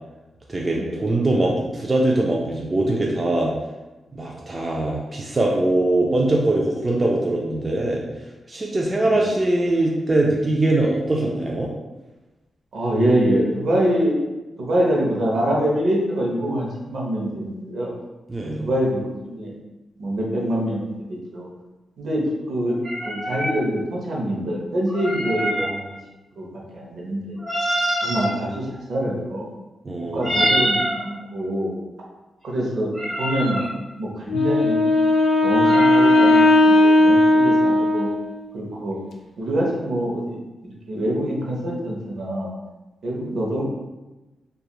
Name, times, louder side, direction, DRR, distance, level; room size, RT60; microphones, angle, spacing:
voice 1, 0.5-3.5 4.1-8.0 8.5-11.7 18.3-18.7 29.8-30.4, right 2 dB, 25° right, -2 dB, 0.3 m, -22 dB
voice 2, 12.7-14.2 14.6-17.9 18.6-19.5 20.0-21.5 22.0-22.2 22.5-22.8 23.1-26.0 26.4-27.4 28.0-29.5 30.1-31.7 32.4-32.9 33.2-33.6 34.0-34.9 35.4-38.1 38.5-39.0 39.4-40.4 40.9-42.5 43.0-43.6, right 1 dB, 65° right, -2 dB, 0.7 m, -25 dB
sound 1, 22.8-23.6 24.9-25.7 27.4-28.3 30.2-31.0 32.9-33.7 35.6-36.4, equal, 10° right, 1.1 m, -25 dB
Wind instrument woodwind instrument, 34.3-38.5, left 2 dB, 75° left, 0.3 m, -16 dB
2.9 x 2.3 x 2.3 m, 1.1 s
wide cardioid pair, 120°, 0 cm